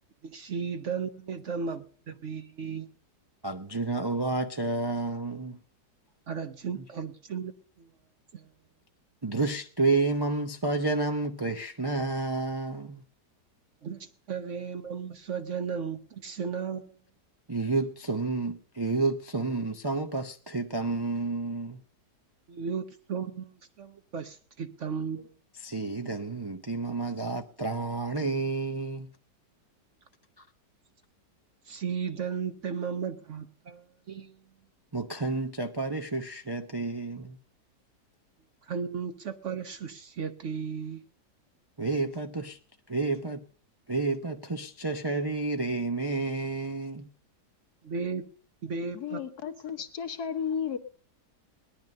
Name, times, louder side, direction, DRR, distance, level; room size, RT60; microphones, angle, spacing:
voice 1, 0.2-2.9 6.3-7.9 8.3-8.5 13.8-16.9 22.5-25.3 31.7-34.3 38.7-41.0 47.8-48.2 48.6-49.2, right 6 dB, 50° right, 1.1 m, -35 dB
voice 2, 3.4-5.6 6.7-6.8 9.2-13.0 17.5-21.8 25.6-29.1 34.9-37.4 41.8-42.6 42.9-43.4 43.9-47.1, right 3 dB, 30° right, 0.4 m, -30 dB
voice 3, 48.9-50.8, left 7 dB, 70° left, 1.7 m, -33 dB
18.0 x 11.0 x 5.4 m
omnidirectional pair, 1.8 m